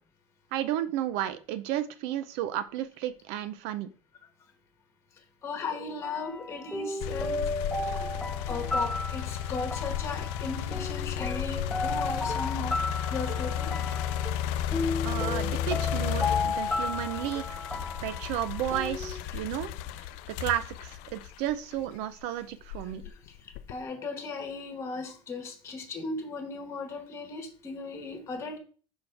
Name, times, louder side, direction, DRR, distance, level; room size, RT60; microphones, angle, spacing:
voice 1, 0.5-3.9 15.0-17.6 18.0-19.7 20.0-23.0, right 12 dB, 80° right, 0.7 m, -33 dB
voice 2, 5.4-8.2 8.5-12.8 13.1-13.7 19.3-19.5 23.0-23.1 23.7-28.6, left 3 dB, 25° left, 1.6 m, -37 dB
sound 1, 6.0-19.2, left 2 dB, 5° left, 0.5 m, -34 dB
sound 2, 7.0-22.0 22.6-23.8, left 11 dB, 80° left, 0.4 m, -33 dB
Dishes pots and pans, 11.9-13.0 13.3-19.1, right 4 dB, 35° right, 0.8 m, -46 dB
5.1 x 4.2 x 5.8 m
cardioid pair, 165°, 11 cm